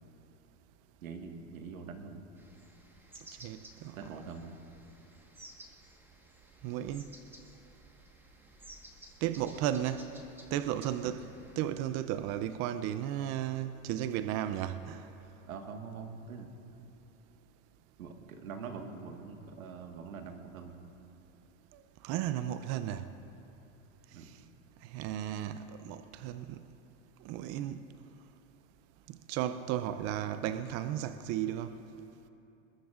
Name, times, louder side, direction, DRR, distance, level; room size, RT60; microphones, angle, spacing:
voice 1, 1.0-2.2 3.9-4.6 11.0-11.2 15.5-16.5 18.0-20.9 24.1-24.3, right 5 dB, 90° right, 1.7 m, -44 dB
sound 1, 2.4-11.6, right 1 dB, 5° right, 1.4 m, -55 dB
voice 2, 3.4-4.1 6.6-7.1 9.2-10.1 10.5-11.2 11.6-15.1 21.7-23.0 24.8-26.6 27.2-27.8 29.1-31.8, right 11 dB, 40° right, 0.5 m, -34 dB
22.0 x 20.5 x 2.5 m
hypercardioid pair, 120°, 40 cm